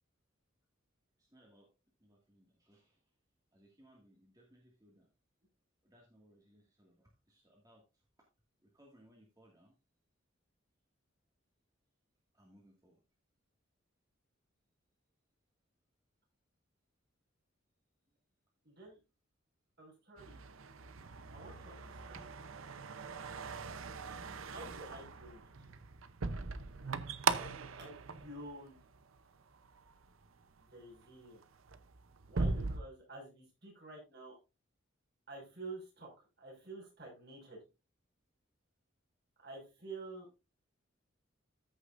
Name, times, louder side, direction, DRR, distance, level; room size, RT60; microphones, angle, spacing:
voice 1, 1.2-1.7 2.0-3.1 3.5-5.1 5.8-8.1 8.6-9.7 12.3-13.0, equal, 20° right, -2 dB, 2.0 m, -65 dB
voice 2, 18.6-19.0 19.8-20.4 21.3-22.2 24.4-25.7 27.2-28.8 30.7-31.4 32.3-34.4 35.3-36.1 36.4-37.6 39.4-40.3, right 2 dB, 50° right, -1 dB, 5.5 m, -49 dB
sound 1, 20.2-29.2 29.6-30.0 30.6-30.8 31.1-32.8, right 4 dB, 80° right, 0.7 m, -40 dB
14.5 x 6.5 x 2.5 m, 0.27 s
head